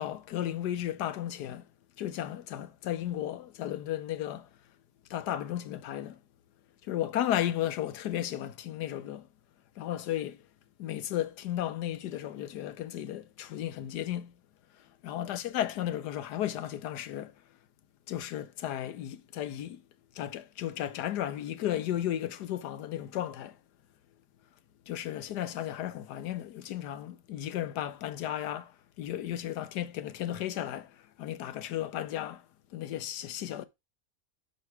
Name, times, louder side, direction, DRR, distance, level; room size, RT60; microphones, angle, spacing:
voice 1, 0.0-1.7 2.0-4.5 5.1-6.2 6.8-9.3 9.8-10.4 10.8-14.3 15.0-17.3 18.1-19.8 20.1-23.6 24.9-32.4 32.7-33.6, left 12 dB, 85° left, 1.3 m, -34 dB
6.0 x 5.4 x 4.6 m
omnidirectional pair, 1.7 m